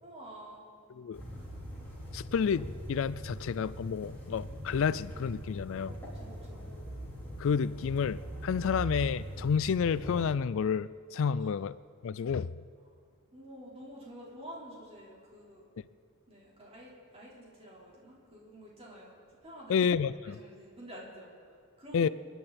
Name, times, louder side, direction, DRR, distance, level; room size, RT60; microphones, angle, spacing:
voice 1, 0.0-0.7 6.1-6.7 11.4-11.5 13.3-15.7 16.3-19.1 19.4-19.9 20.2-22.1, equal, 30° right, -5 dB, 4.2 m, -49 dB
sound 1, 1.1-10.3, right 1 dB, 10° left, 3.9 m, -42 dB
voice 2, 2.1-5.9 7.4-11.8 12.0-12.5 19.7-20.4 21.9-22.1, left 6 dB, 65° left, 17 dB, 0.4 m, -30 dB
27.5 x 11.0 x 4.3 m, 2.2 s
head